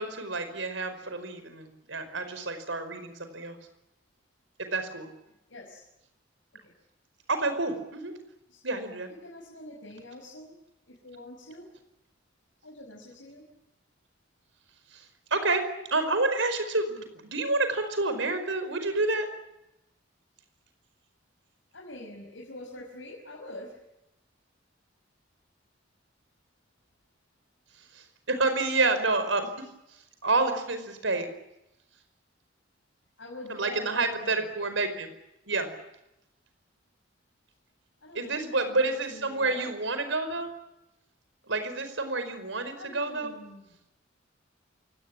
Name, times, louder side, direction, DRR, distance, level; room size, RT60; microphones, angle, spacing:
voice 1, 0.0-3.6 4.7-5.1 7.3-8.1 8.6-9.1 14.9-15.0 15.3-15.6 15.9-19.3 27.9-29.5 30.2-31.3 33.5-35.1 35.5-35.7 38.1-40.5 41.5-43.3, right 3 dB, 80° right, 9 dB, 5.1 m, -29 dB
voice 2, 5.5-5.8 6.6-6.7 8.5-8.6 9.2-10.6 10.8-11.7 12.6-13.5 21.7-23.8 33.2-34.5 38.0-39.7 42.8-43.7, left 1 dB, 75° left, -1 dB, 6.0 m, -45 dB
28.5 x 18.0 x 9.9 m, 0.88 s
head